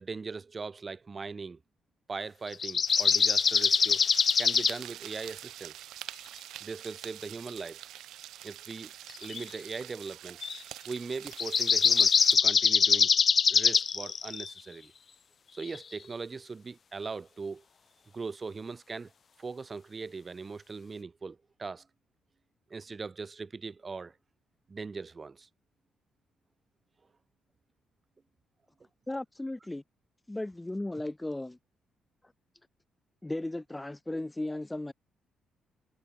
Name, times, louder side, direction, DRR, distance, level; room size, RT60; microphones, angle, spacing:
voice 1, 0.0-1.6 2.1-4.0 4.4-5.8 6.6-7.9 8.4-8.9 9.2-10.4 10.9-13.1 13.5-14.9 15.5-17.6 18.1-19.1 19.4-21.9 22.7-24.1 24.7-25.5, right 4 dB, 30° right, 3.5 m, -40 dB
sound 1, 2.5-4.8 9.1-9.4 10.4-10.6 11.4-14.5 15.6-15.8, left 6 dB, 45° left, 0.4 m, -24 dB
sound 2, 2.9-12.4, right 13 dB, 80° right, 0.9 m, -46 dB
voice 2, 29.1-29.8 30.3-31.6 33.2-34.9, left 1 dB, 10° left, 1.1 m, -35 dB
cardioid pair, 90°, 0 cm